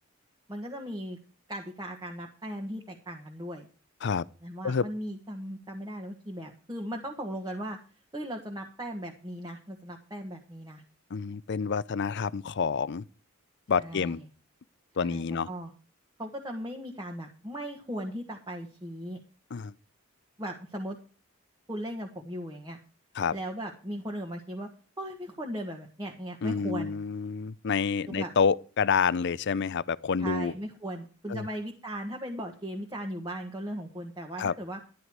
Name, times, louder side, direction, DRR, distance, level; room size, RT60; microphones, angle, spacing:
voice 1, 0.5-1.2 1.5-3.7 4.4-7.8 8.1-10.8 13.8-14.2 15.0-15.7 16.2-19.2 20.4-21.0 21.7-22.8 23.3-24.7 25.0-26.9 28.1-28.3 30.2-34.8, equal, 20° right, 1.6 m, -37 dB
voice 2, 11.1-13.0 13.7-14.2 15.0-15.5 19.5-19.7 23.1-23.3 26.4-30.5 31.3-31.5 34.4-34.5, left 6 dB, 55° left, 0.5 m, -28 dB
12.0 x 10.5 x 4.7 m
head